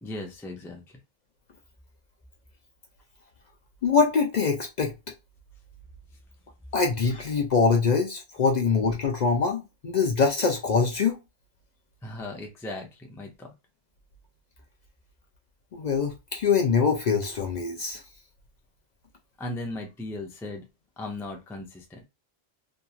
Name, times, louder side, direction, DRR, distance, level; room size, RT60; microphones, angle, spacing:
voice 1, 0.0-0.8 12.0-13.5 19.4-20.6 21.0-22.0, left 2 dB, 5° left, 0.3 m, -37 dB
voice 2, 3.8-4.9 6.7-11.2 15.7-18.0, left 5 dB, 55° left, 0.5 m, -24 dB
2.9 x 2.5 x 2.3 m
omnidirectional pair, 1.1 m